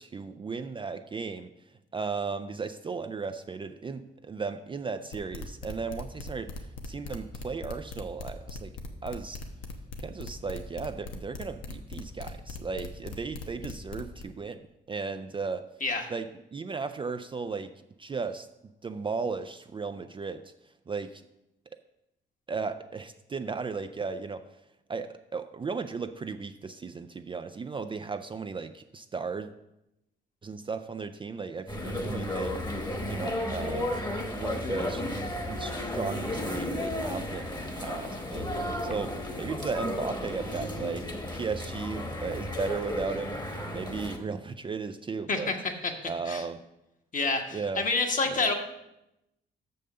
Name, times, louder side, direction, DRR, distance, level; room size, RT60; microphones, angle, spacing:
voice 1, 0.0-1.5 1.9-8.7 9.0-9.4 10.0-15.7 16.1-17.7 18.0-18.5 18.8-20.5 20.9-21.2 22.5-24.5 24.9-29.5 30.4-32.6 33.1-33.9 34.2-35.0 35.5-43.4 43.7-45.5 46.0-46.6 47.5-47.9 48.3-48.5, right 4 dB, 25° right, 8 dB, 0.4 m, -35 dB
sound 1, 5.1-14.2, left 3 dB, 85° left, 1.0 m, -40 dB
sound 2, 31.7-44.2, left 1 dB, 20° left, 1.3 m, -33 dB
voice 2, 45.3-46.4 47.1-48.5, left 3 dB, 40° left, 4 dB, 1.3 m, -28 dB
6.5 x 5.4 x 6.6 m, 0.88 s
cardioid pair, 90°, 20 cm